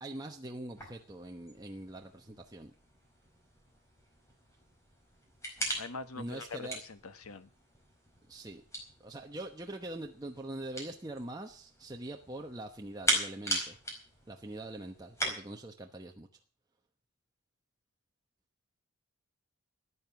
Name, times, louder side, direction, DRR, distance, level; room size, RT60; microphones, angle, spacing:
voice 1, 0.0-2.7 6.2-6.8 8.3-8.6 9.0-13.8 14.3-16.3, right 1 dB, 15° right, 2 dB, 1.0 m, -43 dB
sound 1, 0.7-15.3, right 1 dB, 15° left, 4.7 m, -40 dB
voice 2, 5.8-7.5, left 4 dB, 75° left, 11 dB, 1.2 m, -43 dB
14.0 x 9.5 x 7.0 m, 0.41 s
head